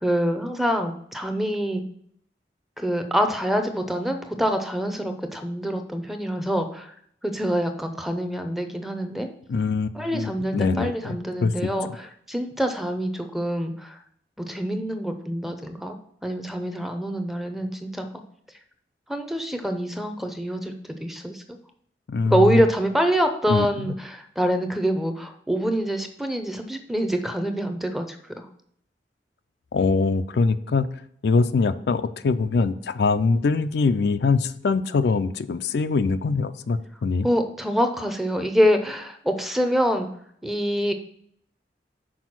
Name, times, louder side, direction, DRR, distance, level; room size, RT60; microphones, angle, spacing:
voice 1, 0.0-1.8 2.8-6.9 7.2-9.3 9.9-14.0 14.4-15.9 16.2-18.2 19.1-21.4 22.3-28.5 37.2-40.1 40.4-40.9, equal, ahead, 5 dB, 0.6 m, -25 dB
voice 2, 9.5-11.2 11.4-11.5 22.1-22.6 23.5-23.9 29.7-30.9 31.2-37.3, left 4 dB, 70° left, 11 dB, 0.4 m, -23 dB
6.2 x 4.5 x 6.0 m, 0.67 s
head